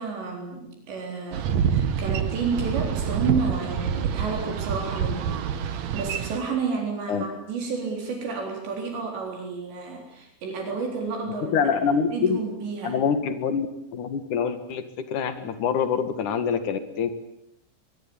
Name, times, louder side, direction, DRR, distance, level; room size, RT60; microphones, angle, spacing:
voice 1, 0.0-13.0, right 4 dB, 70° right, 2 dB, 6.1 m, -31 dB
Boat Water vehicle, 1.3-6.4, right 8 dB, 85° right, 1.5 m, -27 dB
voice 2, 11.4-12.4 12.8-13.7 13.9-17.1, left 6 dB, 55° left, 10 dB, 2.8 m, -25 dB
23.0 x 23.0 x 8.7 m, 0.77 s
omnidirectional pair, 5.3 m